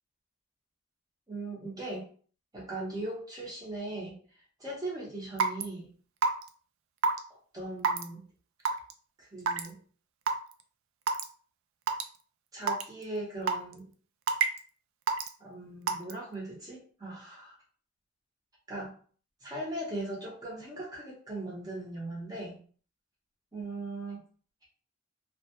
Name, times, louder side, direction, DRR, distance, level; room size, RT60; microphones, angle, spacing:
voice 1, 1.3-2.1 2.5-4.2 4.6-5.9 7.5-8.3 9.2-9.8 12.5-13.9 15.4-17.6 18.7-18.9 19.4-22.6 23.5-24.2, right 2 dB, 20° right, -4 dB, 0.7 m, -39 dB
Raindrop / Water tap faucet / Drip, 5.4-5.6 6.2-6.5 7.0-7.2 7.8-8.0 8.7-8.9 9.5-9.7 10.3-10.4 11.1-11.2 11.9-12.0 12.7-12.8 13.5-13.7 14.3-14.6 15.1-15.3 15.9-16.1, right 5 dB, 80° right, 0.3 m, -26 dB
2.2 x 2.0 x 2.8 m, 0.43 s
head